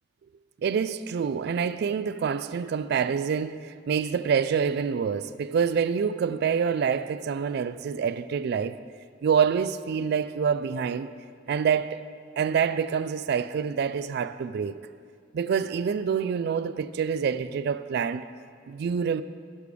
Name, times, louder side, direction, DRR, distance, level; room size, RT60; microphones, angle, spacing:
voice 1, 0.6-8.8 9.2-11.1 11.5-12.0 12.4-14.7 15.3-18.3 18.7-19.2, right 6 dB, 60° right, 0.3 m, -26 dB
11.5 x 5.1 x 5.0 m
head